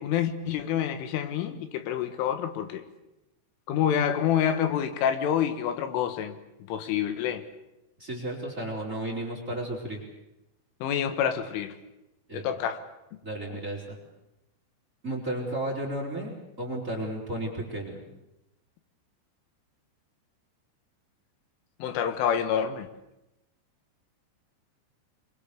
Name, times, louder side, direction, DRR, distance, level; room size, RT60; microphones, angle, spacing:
voice 1, 0.0-2.8 3.7-6.4 6.7-7.4 10.8-11.7 12.3-12.8 21.8-22.9, left 9 dB, 75° left, 3.9 m, -27 dB
voice 2, 8.0-10.0 12.3-12.6 13.2-14.0 15.0-16.3 16.6-18.0, right 1 dB, 15° right, 4.1 m, -33 dB
24.5 x 24.5 x 6.9 m
omnidirectional pair, 5.9 m